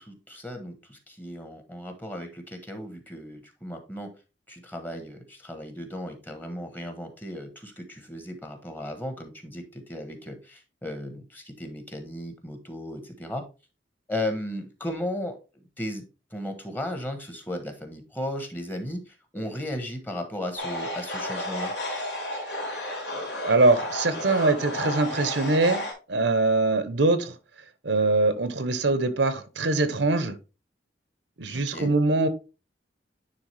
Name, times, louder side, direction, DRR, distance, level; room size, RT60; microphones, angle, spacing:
voice 1, 0.0-4.1 4.5-13.4 14.1-15.4 15.8-16.0 16.3-21.7 31.7-31.9, left 1 dB, 10° left, 1.1 m, -35 dB
sound 1, 20.6-25.9, left 1 dB, 75° left, 2.5 m, -32 dB
voice 2, 23.4-25.8 26.1-27.3 27.8-30.3 31.4-32.3, right 2 dB, 80° right, 0.9 m, -23 dB
9.9 x 3.5 x 3.3 m
head